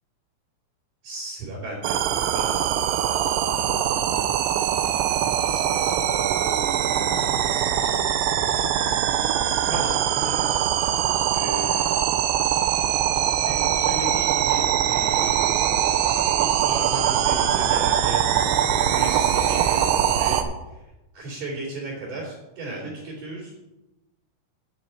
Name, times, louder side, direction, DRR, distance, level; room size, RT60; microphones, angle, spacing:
voice 1, 1.0-2.0 2.3-2.7 3.6-4.3 4.8-7.5 9.3-9.4 9.7-10.5 11.3-12.0 12.8-15.5 16.4-18.2 18.8-20.4 21.1-23.6, right 2 dB, 45° right, -5 dB, 4.3 m, -36 dB
sound 1, 1.8-20.4, right 10 dB, 80° right, 2.7 m, -22 dB
9.6 x 9.5 x 4.4 m, 0.99 s
omnidirectional pair, 5.6 m